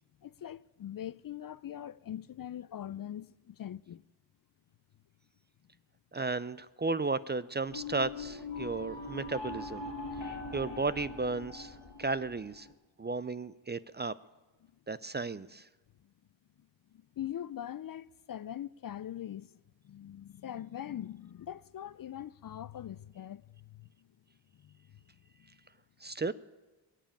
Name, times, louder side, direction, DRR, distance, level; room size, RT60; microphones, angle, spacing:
voice 1, 0.2-4.0 17.2-19.5 19.8-23.9 24.6-24.8, left 11 dB, 50° left, 0.5 m, -42 dB
voice 2, 6.1-9.9 10.2-12.7 13.0-14.1 14.9-15.7 26.0-26.3, right 3 dB, 25° right, 0.4 m, -34 dB
sound 1, 7.7-12.7, left 3 dB, 70° left, 2.1 m, -42 dB
21.5 x 7.4 x 8.9 m
cardioid pair, 55°, 46 cm